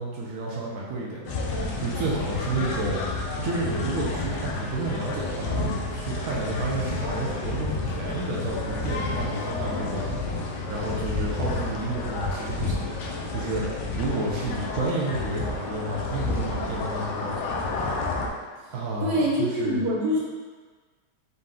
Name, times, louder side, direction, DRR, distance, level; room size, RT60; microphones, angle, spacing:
voice 1, 0.0-1.4 1.8-3.0 3.4-10.4 10.7-12.9 13.3-17.4 18.7-19.8, right 2 dB, 60° right, -4 dB, 1.0 m, -31 dB
sound 1, 1.3-18.3, left 3 dB, 85° left, 1.2 m, -30 dB
voice 2, 19.0-20.2, equal, 75° right, -5 dB, 1.6 m, -24 dB
4.2 x 2.8 x 3.7 m, 1.4 s
omnidirectional pair, 1.8 m